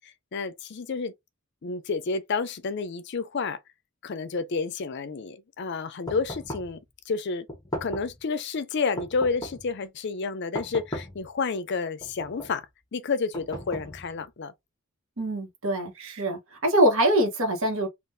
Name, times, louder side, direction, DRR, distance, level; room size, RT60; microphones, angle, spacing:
voice 1, 0.3-1.1 1.6-3.6 4.0-6.8 7.1-7.5 7.8-12.6 12.9-14.5, left 4 dB, 55° left, 0.5 m, -30 dB
sound 1, 6.1-6.8 7.5-8.2 9.0-9.7 10.5-11.3 12.0-12.6 13.3-14.2, equal, 20° left, 1.0 m, -37 dB
voice 2, 15.2-17.9, right 1 dB, 70° right, 1.1 m, -24 dB
3.7 x 2.4 x 2.6 m
head